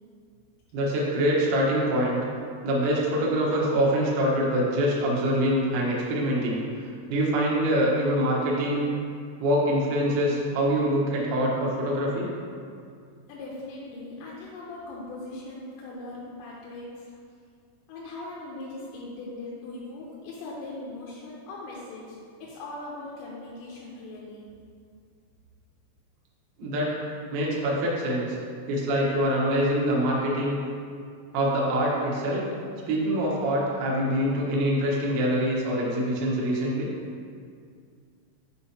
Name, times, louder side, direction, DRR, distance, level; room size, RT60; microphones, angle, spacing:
voice 1, 0.7-2.2 2.6-8.9 9.4-12.3 26.6-27.0 27.3-28.3 28.7-30.6 31.3-32.5 32.9-36.9, equal, 70° right, -4 dB, 2.4 m, -25 dB
voice 2, 13.3-17.1 17.9-24.5, left 2 dB, 90° left, -5 dB, 3.3 m, -40 dB
6.6 x 5.6 x 2.8 m, 2.3 s
omnidirectional pair, 5.6 m